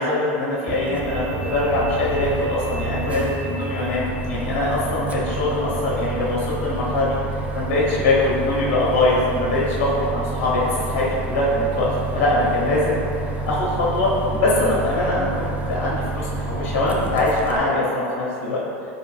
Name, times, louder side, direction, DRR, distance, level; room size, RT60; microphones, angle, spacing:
voice 1, 0.0-7.2 7.5-11.9 12.1-13.0 13.5-18.6, left 2 dB, 65° left, -6 dB, 0.9 m, -22 dB
Bus, 0.7-17.6, right 3 dB, 20° right, 0.4 m, -29 dB
3.5 x 2.9 x 3.3 m, 2.6 s
supercardioid pair, 110°, 7 cm